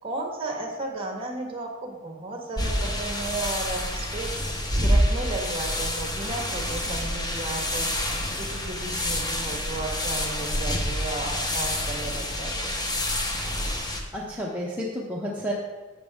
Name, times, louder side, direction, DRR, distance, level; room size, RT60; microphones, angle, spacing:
voice 1, 0.0-4.3 4.8-7.9 8.4-12.8, right 2 dB, 30° right, 1 dB, 1.5 m, -34 dB
sound 1, 2.6-14.0, left 1 dB, 20° left, 0.9 m, -28 dB
voice 2, 13.8-15.5, equal, 5° right, -5 dB, 0.9 m, -32 dB
11.0 x 7.4 x 3.6 m, 1.3 s
head